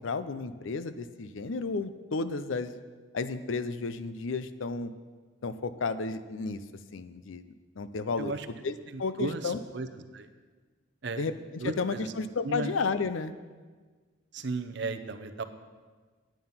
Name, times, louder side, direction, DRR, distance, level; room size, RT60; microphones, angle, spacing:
voice 1, 0.0-2.8 3.1-4.9 5.4-6.6 6.9-7.4 7.8-8.3 8.6-8.7 9.0-9.6 11.2-11.3 11.8-13.3, left 4 dB, 80° left, 12 dB, 0.6 m, -32 dB
voice 2, 8.2-8.5 8.9-10.3 11.0-11.3 11.6-12.1 12.4-12.7 14.3-15.4, right 3 dB, 60° right, 9 dB, 0.7 m, -35 dB
9.5 x 9.1 x 5.6 m, 1.4 s
head